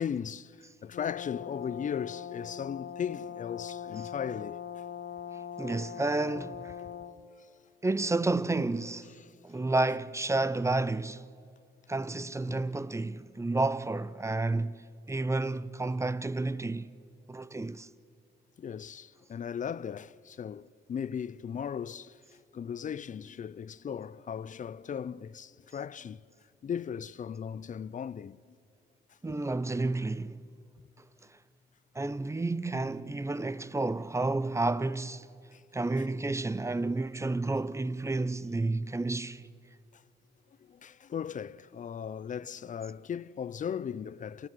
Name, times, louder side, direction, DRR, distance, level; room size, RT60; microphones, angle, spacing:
voice 1, 0.0-4.8 6.8-6.9 7.4-7.5 12.5-12.7 18.6-22.2 22.5-26.2 26.6-28.6 29.1-29.2 35.5-35.6 39.9-40.0 40.6-44.5, left 8 dB, 40° left, 0.6 m, -37 dB
Brass instrument, 0.9-7.2, left 9 dB, 75° left, 1.3 m, -41 dB
voice 2, 5.6-6.7 7.8-9.1 9.4-11.3 11.9-14.8 15.1-16.9 17.3-17.9 29.2-30.4 31.9-35.3 35.7-39.4, right 2 dB, 15° right, 0.6 m, -30 dB
28.5 x 15.5 x 9.2 m
cardioid pair, 90°, 20 cm